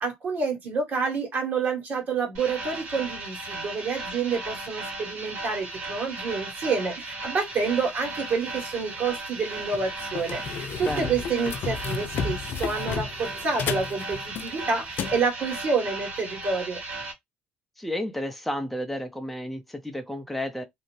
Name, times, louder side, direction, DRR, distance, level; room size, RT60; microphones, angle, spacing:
voice 1, 0.0-16.8, right 4 dB, 50° right, 1.6 m, -28 dB
sound 1, 2.3-17.1, right 2 dB, 70° right, 1.5 m, -36 dB
sound 2, 8.6-8.8 9.3-9.4 9.7-15.2, left 6 dB, 60° left, 0.4 m, -33 dB
voice 2, 10.8-11.1 17.8-20.6, left 1 dB, ahead, 0.7 m, -32 dB
2.8 x 2.0 x 3.1 m
hypercardioid pair, 65°, 4 cm